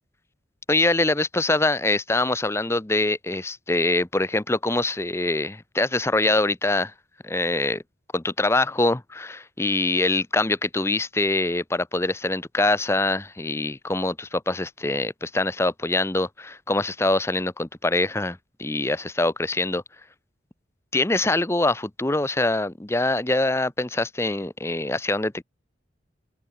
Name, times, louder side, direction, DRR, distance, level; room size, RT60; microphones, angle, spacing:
voice 1, 0.7-6.9 7.2-7.8 8.1-19.8 20.9-25.4, left 2 dB, 15° left, 0.7 m, -24 dB
open air
head